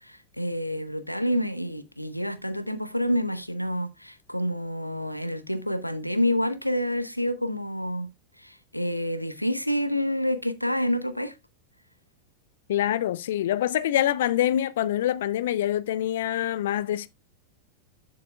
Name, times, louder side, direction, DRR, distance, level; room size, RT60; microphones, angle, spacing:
voice 1, 0.0-8.1 8.4-11.4, equal, 90° left, 0.9 m, -28 dB
voice 2, 12.7-17.1, left 12 dB, 60° left, 0.4 m, -25 dB
10.5 x 7.8 x 2.3 m
figure-of-eight pair, 90°, 0 cm